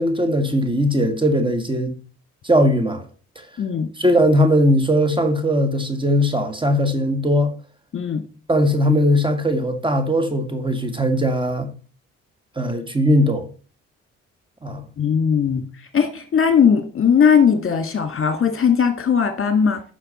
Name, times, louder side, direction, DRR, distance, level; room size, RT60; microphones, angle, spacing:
voice 1, 0.0-2.0 2.4-3.1 3.4-3.5 4.0-7.6 8.5-11.7 12.6-13.5 14.6-14.8, equal, 15° right, 1.9 m, -19 dB
voice 2, 3.6-3.9 7.9-8.2 15.0-15.7 15.9-19.8, left 7 dB, 45° left, 1.8 m, -18 dB
9.8 x 6.3 x 4.3 m
supercardioid pair, 60°, 31 cm